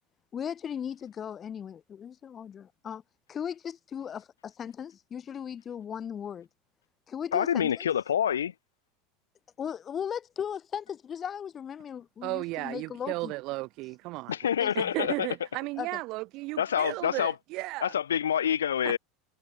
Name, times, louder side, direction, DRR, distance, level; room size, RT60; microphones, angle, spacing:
voice 1, 0.3-3.0 3.3-6.5 7.1-7.9 9.6-13.3 14.6-14.9 15.8-15.9, left 8 dB, 30° left, 1.8 m, -37 dB
voice 2, 7.3-8.5 14.3-15.3 16.6-17.3 17.8-19.0, left 9 dB, 75° left, 2.1 m, -27 dB
voice 3, 12.2-14.4 14.7-17.9 18.8-19.0, right 22 dB, 50° right, 1.5 m, -35 dB
figure-of-eight pair, 75°, 0 cm